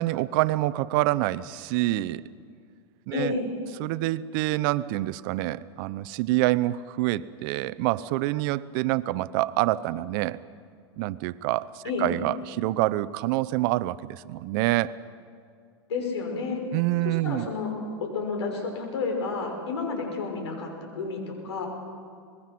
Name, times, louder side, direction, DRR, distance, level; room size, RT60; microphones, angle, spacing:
voice 1, 0.0-2.2 3.1-3.4 3.8-10.4 11.0-14.9 16.7-17.5, right 17 dB, 55° right, 17 dB, 0.7 m, -26 dB
voice 2, 3.1-3.4 11.8-12.1 15.9-16.6 17.0-17.7 18.0-21.7, left 4 dB, 90° left, 2 dB, 6.0 m, -30 dB
25.0 x 20.5 x 6.1 m, 2.2 s
supercardioid pair, 130°, 14 cm